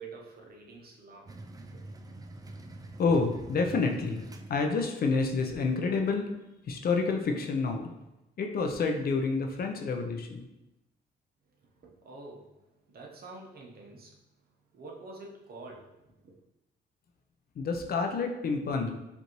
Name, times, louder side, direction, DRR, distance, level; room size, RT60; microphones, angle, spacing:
voice 1, 0.0-1.3 11.6-14.2 14.7-16.4, right 3 dB, 50° right, -1 dB, 1.0 m, -47 dB
sound 1, 1.3-5.1, right 2 dB, 20° right, 0.4 m, -45 dB
voice 2, 3.0-4.2 4.5-6.3 6.7-7.9 8.4-10.4 17.6-19.0, left 4 dB, 50° left, 3 dB, 0.6 m, -28 dB
5.2 x 2.6 x 3.0 m, 0.94 s
cardioid pair, 90°, 20 cm